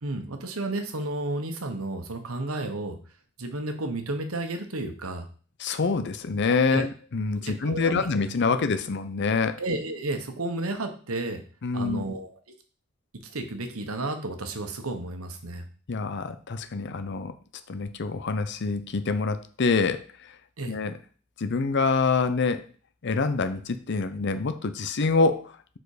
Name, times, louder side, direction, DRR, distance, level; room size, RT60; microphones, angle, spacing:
voice 1, 0.0-3.0 3.4-5.3 6.7-6.8 7.4-8.1 9.6-11.4 11.7-12.3 13.3-15.6 20.6-20.8, right 2 dB, 85° right, 6 dB, 1.2 m, -32 dB
voice 2, 5.6-9.6 11.6-12.0 15.9-17.3 17.7-20.1 20.7-21.0 21.4-22.6 23.0-25.8, left 4 dB, 55° left, 11 dB, 0.6 m, -26 dB
6.9 x 4.4 x 4.9 m, 0.40 s
head